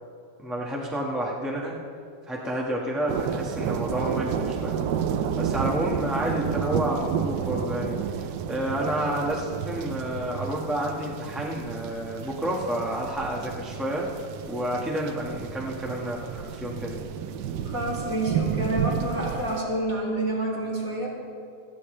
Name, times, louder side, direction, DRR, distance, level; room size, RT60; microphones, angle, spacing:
voice 1, 0.4-1.8 2.3-4.8 5.4-8.0 8.5-14.1 14.5-17.1, right 1 dB, ahead, -3 dB, 1.2 m, -30 dB
sound 1, 3.1-19.6, right 8 dB, 70° right, 1.1 m, -31 dB
voice 2, 17.6-21.1, right 1 dB, 40° right, -5 dB, 3.3 m, -28 dB
26.5 x 9.8 x 3.3 m, 2.4 s
omnidirectional pair, 2.3 m